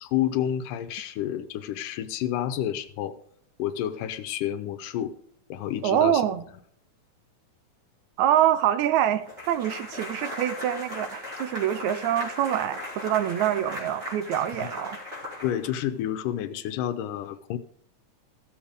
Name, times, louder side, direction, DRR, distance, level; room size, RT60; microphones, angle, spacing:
voice 1, 0.0-3.2 3.6-5.1 5.5-6.2 15.4-17.6, left 11 dB, 85° left, 10 dB, 2.3 m, -29 dB
voice 2, 5.8-6.4 8.2-15.0, right 11 dB, 75° right, 12 dB, 1.8 m, -25 dB
sound 1, 9.3-16.0, left 2 dB, 25° right, 3.9 m, -38 dB
16.0 x 7.2 x 5.0 m, 0.66 s
omnidirectional pair, 3.7 m